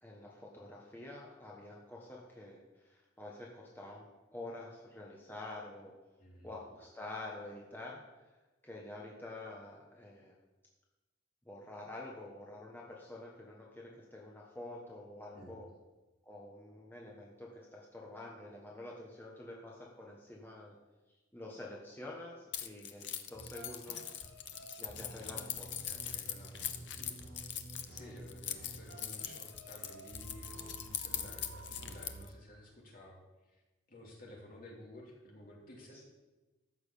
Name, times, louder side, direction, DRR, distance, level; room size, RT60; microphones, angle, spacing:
voice 1, 0.0-5.9 6.4-8.0 8.6-10.3 11.4-15.7 16.2-20.8 21.3-24.2 24.8-25.7 27.9-28.1 35.9-36.0, left 2 dB, 10° left, -3 dB, 1.4 m, -48 dB
voice 2, 6.2-6.6 15.3-15.6 25.8-27.2 27.9-33.2 33.5-33.6 33.9-36.0, left 1 dB, 45° left, -2 dB, 3.0 m, -53 dB
Keys jangling, 22.5-32.3, left 10 dB, 65° left, 0.7 m, -41 dB
sound 1, 23.3-32.2, right 2 dB, 80° right, 2.9 m, -51 dB
13.5 x 6.2 x 7.0 m, 1.1 s
head